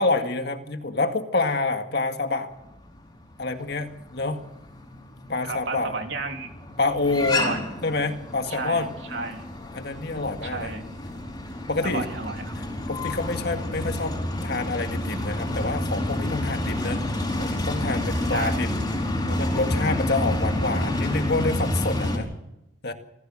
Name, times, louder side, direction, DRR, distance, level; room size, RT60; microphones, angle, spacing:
voice 1, 0.0-2.5 3.4-4.4 5.3-5.9 6.8-7.4 7.8-8.9 9.7-10.7 11.7-12.1 12.9-17.0 17.4-18.7 19.3-22.3 22.8-22.9, left 3 dB, 60° left, 6 dB, 2.0 m, -27 dB
sound 1, 2.6-22.2, left 1 dB, 20° left, 4.9 m, -29 dB
voice 2, 5.4-6.5 7.3-7.6 8.5-9.4 10.4-10.8 11.8-12.5 18.3-18.6, right 3 dB, 70° right, 4 dB, 3.2 m, -32 dB
26.5 x 15.5 x 6.3 m, 0.89 s
head